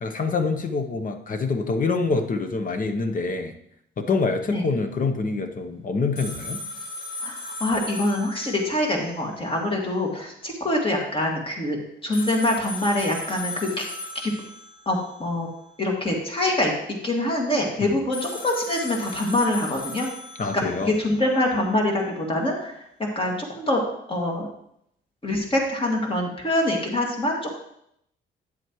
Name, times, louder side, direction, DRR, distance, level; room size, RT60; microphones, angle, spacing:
voice 1, 0.0-3.5 4.0-6.6 17.8-18.0 20.4-20.9, left 4 dB, 45° left, 7 dB, 0.9 m, -26 dB
sound 1, 6.2-9.2 9.5-9.6 12.1-15.1 18.1-21.1, left 2 dB, 80° left, 3.7 m, -37 dB
voice 2, 7.2-11.8 12.0-13.9 14.1-14.3 14.9-15.5 15.8-16.7 17.0-20.1 20.8-22.7 23.2-23.8 24.1-24.5 25.2-27.6, left 1 dB, 25° left, 0 dB, 2.1 m, -24 dB
9.5 x 7.7 x 3.1 m, 0.73 s
cardioid pair, 90°, 20 cm